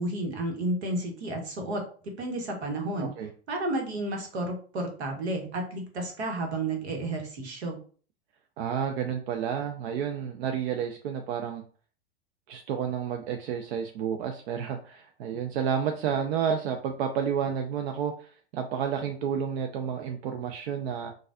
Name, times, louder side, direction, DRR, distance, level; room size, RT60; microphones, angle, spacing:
voice 1, 0.0-3.1 3.5-7.8, right 2 dB, 85° right, 2 dB, 1.2 m, -32 dB
voice 2, 3.0-3.3 8.6-11.6 12.5-21.1, right 8 dB, 65° right, 4 dB, 0.6 m, -30 dB
3.9 x 2.4 x 2.4 m, 0.41 s
hypercardioid pair, 110°, 32 cm